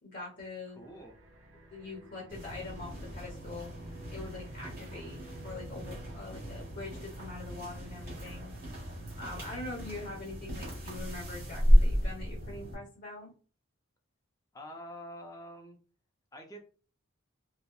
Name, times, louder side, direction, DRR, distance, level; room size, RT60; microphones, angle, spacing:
voice 1, 0.0-0.9 1.7-3.7 4.1-8.5 9.2-13.3, left 2 dB, 50° left, -1 dB, 0.9 m, -43 dB
voice 2, 0.7-1.1 14.5-15.8 16.3-16.6, equal, 15° left, 2 dB, 0.5 m, -46 dB
sound 1, 0.7-11.3, right 1 dB, 65° right, 0.6 m, -54 dB
sound 2, 2.3-12.7, equal, 45° right, 1.1 m, -32 dB
2.9 x 2.1 x 2.2 m, 0.38 s
head